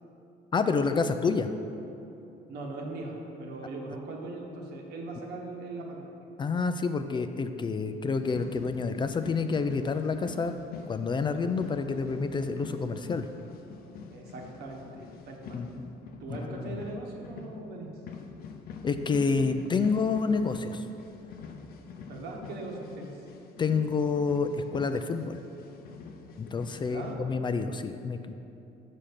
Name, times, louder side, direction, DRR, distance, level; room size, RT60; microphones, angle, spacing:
voice 1, 0.5-1.5 6.4-10.5 10.9-13.3 15.5-15.9 16.4-16.7 18.8-20.8 23.6-25.4 26.4-28.3, left 4 dB, 30° left, 8 dB, 0.3 m, -28 dB
voice 2, 2.5-6.1 14.1-15.7 16.2-17.9 22.1-23.2 26.7-27.2, right 2 dB, 75° right, 0 dB, 1.3 m, -40 dB
sound 1, 8.2-27.2, left 5 dB, 65° left, 0.6 m, -45 dB
5.8 x 5.2 x 6.6 m, 2.9 s
cardioid pair, 110°, 17 cm